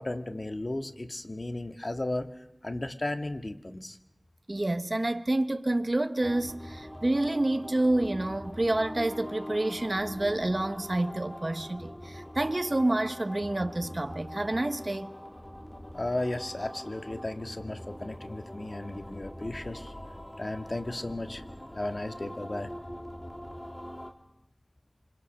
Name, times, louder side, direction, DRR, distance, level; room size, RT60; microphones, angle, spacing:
voice 1, 0.0-2.3 2.6-4.0 15.9-19.9 20.4-21.4 21.7-22.7, left 1 dB, 50° left, 1.9 m, -34 dB
voice 2, 4.5-15.1, right 1 dB, 45° right, 1.3 m, -28 dB
sound 1, 6.2-24.1, equal, 20° left, 3.2 m, -43 dB
27.5 x 25.5 x 6.7 m
wide cardioid pair, 50°, 0 cm